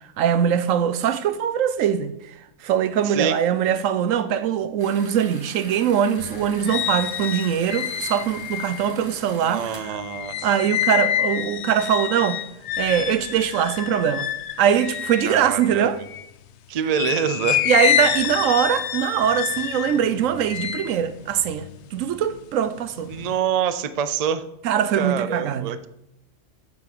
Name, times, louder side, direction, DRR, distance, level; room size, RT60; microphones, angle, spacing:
voice 1, 0.2-2.1 2.6-10.0 10.4-12.4 12.8-14.3 14.6-16.0 17.7-23.1 24.6-25.7, right 9 dB, 75° right, 1.0 m, -22 dB
voice 2, 3.0-3.4 9.4-10.5 15.2-16.0 16.7-17.6 23.1-24.4 24.9-25.9, right 7 dB, 55° right, 0.4 m, -26 dB
sound 1, 4.8-9.8, right 1 dB, 15° right, 1.2 m, -43 dB
sound 2, 6.2-16.4 16.9-22.4 22.8-23.4, left 10 dB, 65° left, 0.8 m, -28 dB
7.7 x 5.9 x 6.7 m
omnidirectional pair, 1.4 m